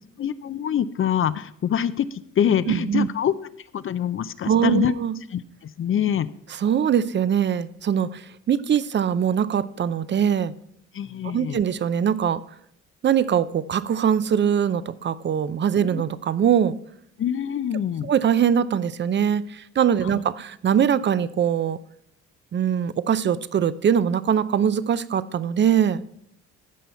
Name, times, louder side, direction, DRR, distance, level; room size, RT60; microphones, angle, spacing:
voice 1, 0.2-3.3 3.7-4.9 5.3-5.4 5.8-6.3 10.9-11.6 17.2-18.1 20.0-20.2, left 9 dB, 45° left, 14 dB, 0.5 m, -25 dB
voice 2, 2.7-3.1 4.5-5.1 6.6-10.5 11.2-12.4 13.0-16.7 18.0-21.8 22.5-26.0, right 8 dB, 40° right, 16 dB, 0.5 m, -22 dB
15.0 x 5.5 x 4.3 m, 0.70 s
cardioid pair, 90°, 30 cm